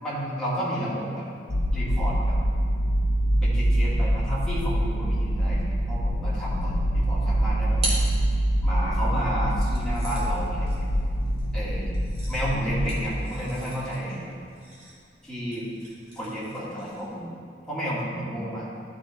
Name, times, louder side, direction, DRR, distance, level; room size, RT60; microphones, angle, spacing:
voice 1, 0.0-1.3 1.7-2.4 3.4-7.8 8.6-10.9 11.5-11.9 12.3-14.3 15.2-15.7 16.2-17.3 17.7-18.7, equal, 5° left, -9 dB, 1.8 m, -31 dB
sound 1, 1.5-13.1, equal, 65° left, 0.9 m, -25 dB
sound 2, 7.1-8.9 9.6-17.2, right 1 dB, 30° right, 1.7 m, -40 dB
11.5 x 4.0 x 4.3 m, 2.3 s
head